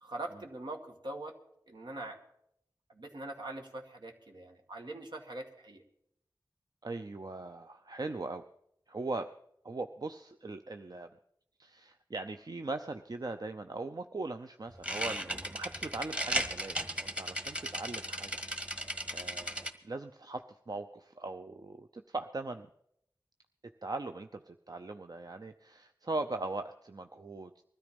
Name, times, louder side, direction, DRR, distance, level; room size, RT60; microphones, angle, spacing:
voice 1, 0.0-1.3 1.7-2.2 2.9-5.8, right 2 dB, 80° right, 2 dB, 2.2 m, -42 dB
voice 2, 6.8-8.4 8.9-9.3 9.6-11.1 11.6-18.8 19.1-22.7 23.8-27.6, right 3 dB, 60° right, 7 dB, 0.7 m, -40 dB
sound 1, 14.7-19.7, equal, 15° right, 1.5 m, -36 dB
20.5 x 13.0 x 5.3 m, 0.75 s
wide cardioid pair, 45°, 8 cm